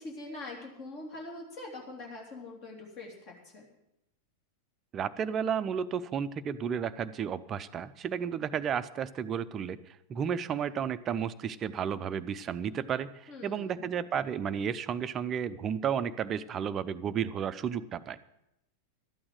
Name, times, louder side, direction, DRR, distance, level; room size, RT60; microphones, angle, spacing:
voice 1, 0.0-3.7 13.3-13.8, left 2 dB, 45° left, -1 dB, 3.0 m, -43 dB
voice 2, 4.9-18.2, right 8 dB, 25° right, 14 dB, 0.6 m, -32 dB
12.5 x 8.7 x 7.7 m, 0.85 s
figure-of-eight pair, 90°, 0 cm